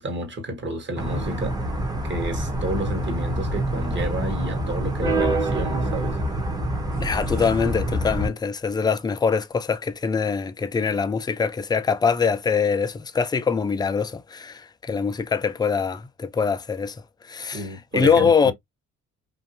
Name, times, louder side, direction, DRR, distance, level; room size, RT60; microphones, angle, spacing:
voice 1, 0.0-1.6 2.0-6.2 17.5-18.5, right 1 dB, 40° right, 1.1 m, -31 dB
sound 1, 1.0-8.3, right 1 dB, 15° right, 0.7 m, -26 dB
sound 2, 6.9-8.8, right 1 dB, 65° right, 1.1 m, -44 dB
voice 2, 7.0-17.0 17.3-17.6 17.9-18.5, left 5 dB, 15° left, 0.3 m, -23 dB
2.6 x 2.3 x 2.6 m
cardioid pair, 90°, 30 cm